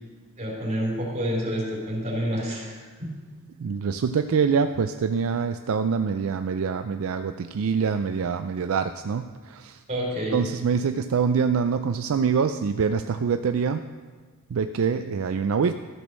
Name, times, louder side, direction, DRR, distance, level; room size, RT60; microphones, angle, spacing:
voice 1, 0.4-3.1 9.9-10.4, equal, 35° right, -4 dB, 3.7 m, -28 dB
voice 2, 3.6-9.8 10.3-13.8 14.5-15.7, right 6 dB, 65° right, 8 dB, 0.4 m, -25 dB
14.0 x 6.2 x 6.3 m, 1.4 s
head